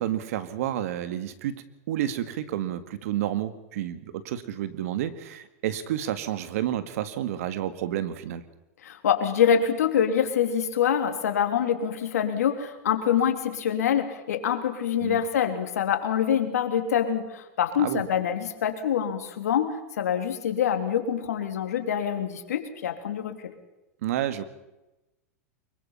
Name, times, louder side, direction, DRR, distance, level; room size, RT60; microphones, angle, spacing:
voice 1, 0.0-8.4 15.0-15.2 17.8-18.0 24.0-24.4, right 11 dB, 70° right, 12 dB, 1.9 m, -30 dB
voice 2, 8.8-23.5, left 8 dB, 80° left, 7 dB, 3.0 m, -25 dB
24.0 x 22.5 x 5.7 m, 0.98 s
hypercardioid pair, 110°, 8 cm